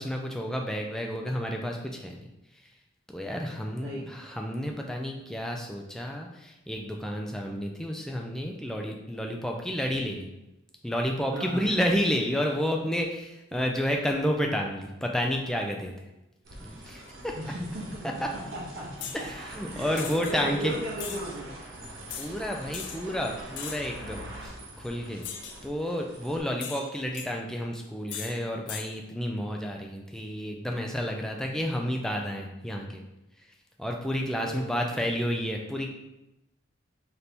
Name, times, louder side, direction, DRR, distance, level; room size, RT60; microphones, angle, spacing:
voice 1, 0.0-2.2 2.6-2.7 3.1-10.3 10.8-16.1 16.6-17.4 19.1-20.7 22.1-25.3 25.6-33.0 33.4-33.5 33.8-35.9, equal, 5° left, 1 dB, 0.3 m, -31 dB
voice 2, 3.8-4.2 11.3-11.7 13.5-13.7 17.3-18.0 18.3-19.3 19.7-21.5 34.3-35.0, right 1 dB, 50° right, -6 dB, 0.9 m, -37 dB
sound 1, 16.4-26.4, right 1 dB, 85° right, 0.9 m, -44 dB
sound 2, 19.0-19.2 20.0-20.3 21.0-21.2 22.1-22.3 22.7-23.0 23.6-23.9 25.2-25.6 26.6-27.3 28.1-28.3 28.7-28.9, left 8 dB, 70° left, 0.4 m, -38 dB
3.3 x 2.6 x 4.3 m, 0.95 s
head